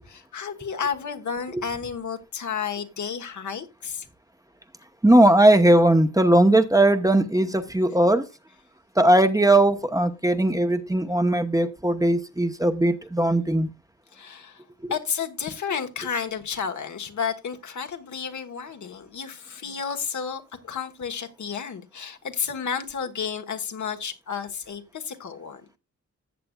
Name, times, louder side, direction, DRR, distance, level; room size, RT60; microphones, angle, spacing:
voice 1, 0.1-4.1 14.1-14.6 14.9-25.6, left 6 dB, 70° left, 1.3 m, -32 dB
voice 2, 5.0-8.3 9.0-13.7 14.8-14.9, right 1 dB, 10° right, 0.9 m, -19 dB
14.5 x 7.8 x 2.3 m
cardioid pair, 75°, 30 cm